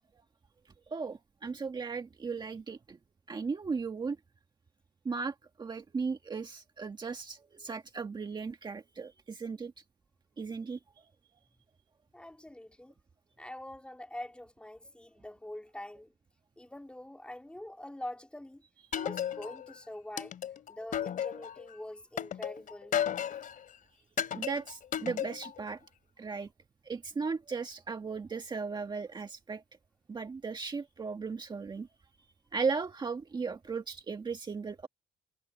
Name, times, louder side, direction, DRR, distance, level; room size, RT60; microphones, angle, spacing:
voice 1, 0.9-3.0 3.3-4.2 5.0-9.7 10.4-10.8 24.3-25.8 26.2-26.5 26.8-29.6 30.1-31.9 32.5-34.9, right 4 dB, 25° right, 1.7 m, -36 dB
voice 2, 12.1-12.9 13.4-16.1 16.6-18.6 19.0-20.4 20.7-22.9, left 1 dB, 5° left, 3.7 m, -44 dB
sound 1, 18.9-19.7 20.2-21.6 22.2-23.6 24.2-25.6, left 9 dB, 55° left, 3.1 m, -34 dB
cardioid pair, 110°, 17 cm